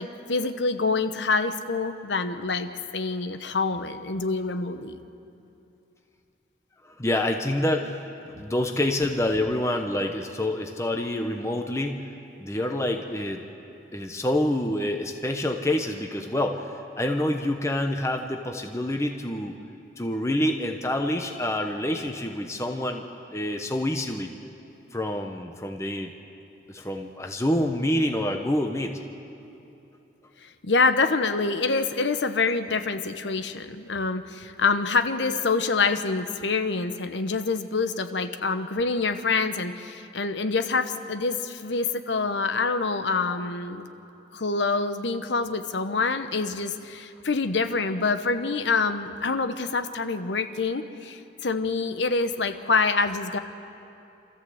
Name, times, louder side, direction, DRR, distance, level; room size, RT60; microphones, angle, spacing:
voice 1, 0.0-5.0 30.6-43.9 44.3-53.4, left 4 dB, 75° left, 10 dB, 1.0 m, -26 dB
voice 2, 6.8-8.0 8.3-12.0 12.4-13.4 13.9-19.6 20.0-23.0 23.3-24.3 24.9-26.1 26.7-29.0 43.3-43.4, left 1 dB, 15° left, 4 dB, 0.9 m, -27 dB
27.0 x 14.0 x 7.9 m, 2.8 s
head